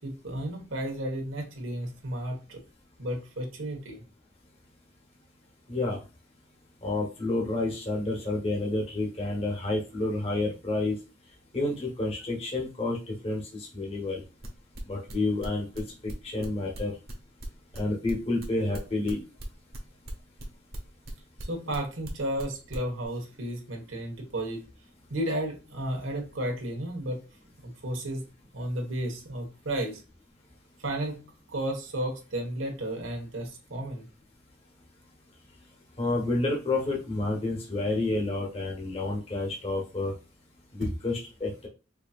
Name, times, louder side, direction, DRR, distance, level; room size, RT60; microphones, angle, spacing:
voice 1, 0.0-2.6 3.0-4.0 21.5-24.6 25.1-27.2 27.6-28.3 28.5-30.0 30.8-31.2 31.5-34.1 40.8-40.9, right 1 dB, 90° right, 1 dB, 1.4 m, -33 dB
voice 2, 6.8-10.9 11.5-14.2 14.9-15.7 16.0-16.9 17.8-19.2 36.0-40.1 40.7-41.7, left 2 dB, 30° left, -2 dB, 1.1 m, -29 dB
sound 1, 14.4-17.8 18.1-21.8 22.0-22.4 22.7-23.1, right 2 dB, 55° right, 1.3 m, -42 dB
5.0 x 2.8 x 2.4 m, 0.31 s
head